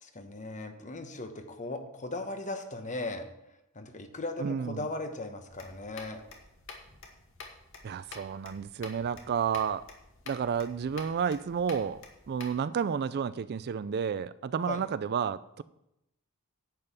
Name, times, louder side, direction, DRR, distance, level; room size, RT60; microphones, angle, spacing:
voice 1, 0.0-3.2 3.7-6.2 14.7-14.8, left 2 dB, 35° left, 6 dB, 1.2 m, -38 dB
voice 2, 4.4-4.9 7.8-9.9 10.3-15.6, right 7 dB, 50° right, 16 dB, 0.3 m, -31 dB
sound 1, 5.5-12.6, left 4 dB, 60° left, 2.0 m, -49 dB
10.5 x 5.6 x 8.1 m, 0.84 s
head